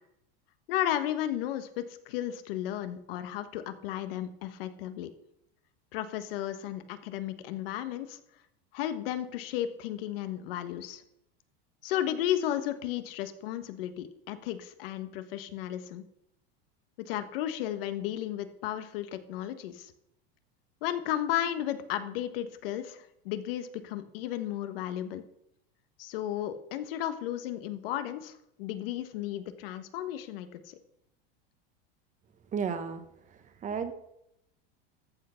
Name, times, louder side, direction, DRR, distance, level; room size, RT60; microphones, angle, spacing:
voice 1, 0.7-5.1 5.9-8.2 8.7-11.0 11.8-16.0 17.0-19.9 20.8-25.2 26.0-30.8, left 12 dB, 70° left, 10 dB, 1.3 m, -34 dB
voice 2, 32.5-33.0 33.6-33.9, right 6 dB, 25° right, 10 dB, 1.2 m, -32 dB
13.5 x 6.6 x 5.7 m, 0.79 s
supercardioid pair, 140°, 29 cm